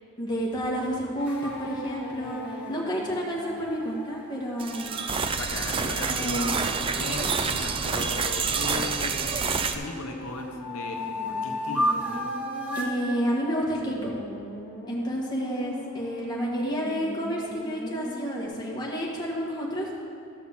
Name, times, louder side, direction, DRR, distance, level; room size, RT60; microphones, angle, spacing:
voice 1, 0.2-2.4 2.7-5.0 6.1-6.6 12.7-14.1 14.9-19.9, equal, 20° left, -4 dB, 1.4 m, -30 dB
sound 1, 1.2-3.6 9.3-18.5, equal, 55° left, 1.5 m, -40 dB
sound 2, 1.3-5.1 8.0-9.3 9.8-13.0, equal, 5° right, 0.9 m, -34 dB
sound 3, 4.6-9.7, right 5 dB, 25° right, 0.3 m, -28 dB
voice 2, 5.4-9.4 9.7-12.3, left 3 dB, 85° left, 3 dB, 0.8 m, -37 dB
12.5 x 4.2 x 7.2 m, 2.5 s
head